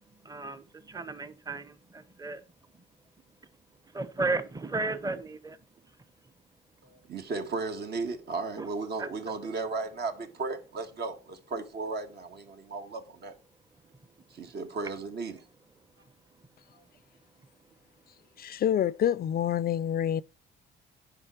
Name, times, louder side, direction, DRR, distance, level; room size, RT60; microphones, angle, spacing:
voice 1, 0.2-2.4 3.9-5.6 9.0-9.1, right 3 dB, 20° right, 0.9 m, -34 dB
voice 2, 6.8-13.3 14.3-15.4, right 3 dB, 55° right, 1.5 m, -35 dB
voice 3, 18.4-20.2, left 10 dB, 50° left, 0.4 m, -27 dB
9.6 x 5.2 x 4.5 m
cardioid pair, 90°, 20 cm